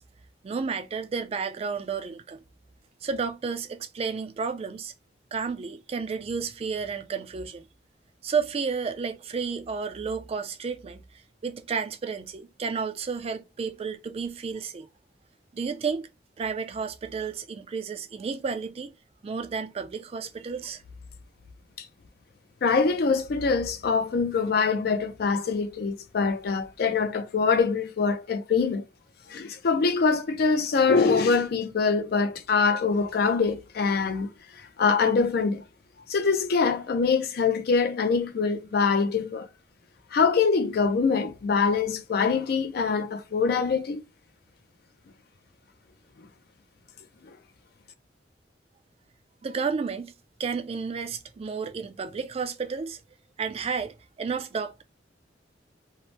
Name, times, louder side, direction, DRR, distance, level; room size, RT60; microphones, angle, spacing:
voice 1, 0.4-2.4 3.0-4.9 5.3-7.6 8.2-11.0 11.4-14.9 15.5-16.1 16.4-18.9 19.2-20.8 49.4-50.1 50.4-53.0 53.4-54.8, right 5 dB, 35° right, 0.3 m, -31 dB
voice 2, 22.6-28.8 29.3-34.3 34.6-35.6 36.1-39.5 40.1-44.0 47.2-47.4, left 5 dB, 60° left, 0.4 m, -24 dB
2.8 x 2.0 x 3.0 m
head